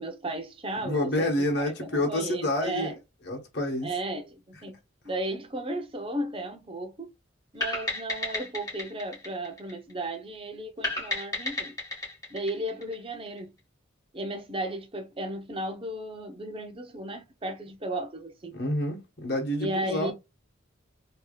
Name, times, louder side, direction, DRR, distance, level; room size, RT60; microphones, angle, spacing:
voice 1, 0.0-2.9 3.8-4.8 5.0-7.1 7.5-11.7 12.3-13.5 14.1-18.6 19.6-20.1, right 1 dB, 25° right, 0.7 m, -35 dB
voice 2, 0.8-2.9 3.3-3.9 18.5-20.1, left 1 dB, 55° left, 1.1 m, -28 dB
sound 1, 7.6-10.1 10.8-13.4, left 2 dB, 20° left, 1.7 m, -33 dB
3.3 x 2.8 x 2.3 m
head